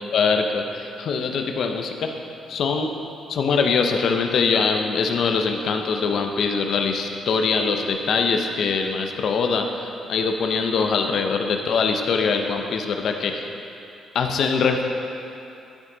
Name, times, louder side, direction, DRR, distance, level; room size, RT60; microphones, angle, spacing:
voice 1, 0.1-2.1 2.5-3.0 3.3-13.5 14.1-14.8, left 5 dB, 65° left, 4 dB, 0.7 m, -23 dB
11.5 x 6.0 x 4.0 m, 2.8 s
cardioid pair, 90°, 0 cm